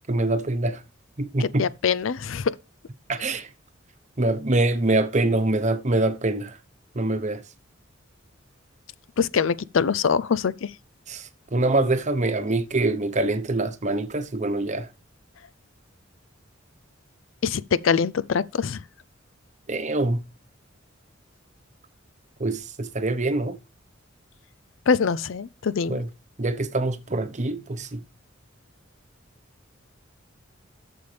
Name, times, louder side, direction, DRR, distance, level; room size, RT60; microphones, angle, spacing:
voice 1, 0.1-0.8 1.2-1.7 3.1-3.5 4.2-6.6 6.9-7.4 11.1-14.9 19.7-20.2 22.4-23.6 25.9-26.1 26.4-28.0, right 2 dB, 35° right, 1.0 m, -24 dB
voice 2, 1.4-2.5 9.2-10.7 17.4-18.8 24.9-26.0, left 6 dB, 70° left, 0.5 m, -24 dB
12.0 x 7.0 x 3.4 m
head